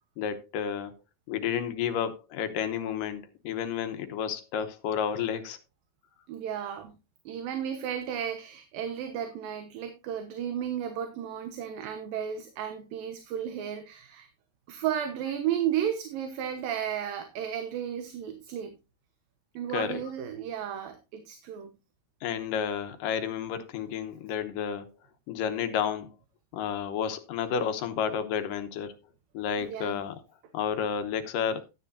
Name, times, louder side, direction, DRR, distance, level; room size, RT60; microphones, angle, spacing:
voice 1, 0.2-0.9 1.3-5.6 19.7-20.0 22.2-24.9 25.3-26.2 26.5-28.9 29.3-30.2 30.5-31.7, left 8 dB, 70° left, 2.4 m, -31 dB
voice 2, 6.3-6.9 7.3-14.3 14.7-18.8 19.6-21.7 29.6-30.0, right 9 dB, 75° right, 2.8 m, -33 dB
13.5 x 9.7 x 2.7 m
omnidirectional pair, 4.4 m